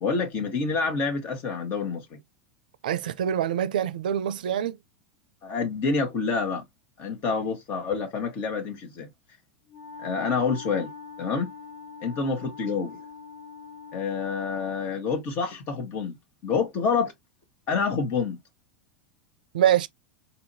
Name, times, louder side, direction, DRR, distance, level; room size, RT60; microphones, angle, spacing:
voice 1, 0.0-2.2 5.4-6.6 7.0-9.1 10.0-10.9 11.2-11.5 12.0-13.0 13.9-16.2 16.4-17.1 17.7-18.4, left 5 dB, 45° left, 1.2 m, -27 dB
voice 2, 2.8-4.8 19.5-19.9, right 10 dB, 75° right, 0.4 m, -24 dB
Wind instrument woodwind instrument, 9.7-15.1, left 4 dB, 75° left, 1.9 m, -43 dB
4.1 x 2.7 x 2.7 m
hypercardioid pair, 95°, 5 cm